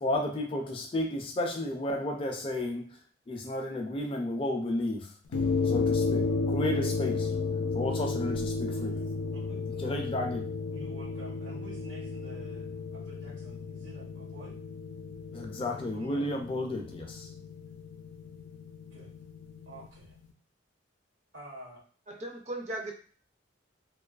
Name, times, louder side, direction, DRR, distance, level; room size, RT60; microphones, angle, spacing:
voice 1, 0.0-2.9 3.3-5.1 5.7-7.3 7.7-9.0 9.8-10.5 15.3-17.3, left 1 dB, 30° left, 2 dB, 0.4 m, -32 dB
sound 1, 5.3-19.9, left 4 dB, 90° left, 0.5 m, -33 dB
voice 2, 10.7-14.6 15.6-16.3 18.9-19.1 19.7-20.2 21.3-21.8, right 1 dB, 80° right, -2 dB, 0.9 m, -48 dB
voice 3, 22.1-22.9, right 2 dB, 35° right, 2 dB, 0.5 m, -37 dB
2.5 x 2.4 x 2.3 m, 0.43 s
head